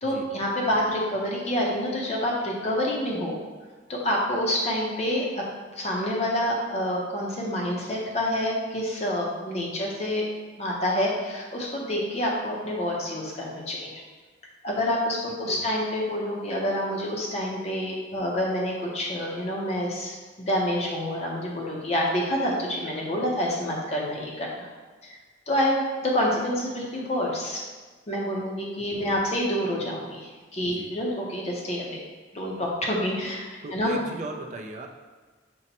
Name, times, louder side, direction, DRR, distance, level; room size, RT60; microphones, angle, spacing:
voice 1, 0.0-3.4 3.9-5.3 5.8-10.3 10.6-14.0 14.6-24.7 25.0-25.2 25.5-27.6 28.1-32.0 32.3-33.4 33.7-33.9, left 1 dB, 35° left, -2 dB, 0.6 m, -27 dB
voice 2, 30.6-31.0 33.6-34.9, right 2 dB, 40° right, 2 dB, 0.3 m, -38 dB
5.2 x 2.1 x 2.8 m, 1.4 s
head